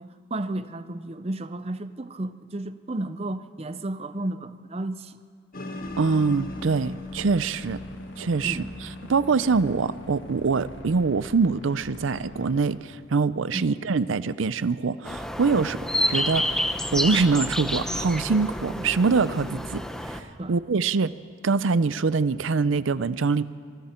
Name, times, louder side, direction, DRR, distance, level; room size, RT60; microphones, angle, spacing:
voice 1, 0.0-5.2 8.4-8.7 13.5-13.6 15.6-15.7 20.4-20.5, right 1 dB, 30° right, 0.6 m, -33 dB
sound 1, 5.5-10.8, left 2 dB, 45° left, 1.8 m, -40 dB
sound 2, 5.8-12.8, left 2 dB, 65° left, 1.9 m, -45 dB
voice 2, 6.0-7.8 8.2-15.8 16.1-16.4 16.9-19.8 20.1-20.2 20.5-21.1 21.4-23.4, right 4 dB, 80° right, 0.5 m, -24 dB
sound 3, 15.0-20.2, equal, 5° left, 0.8 m, -29 dB
25.0 x 24.0 x 4.4 m
head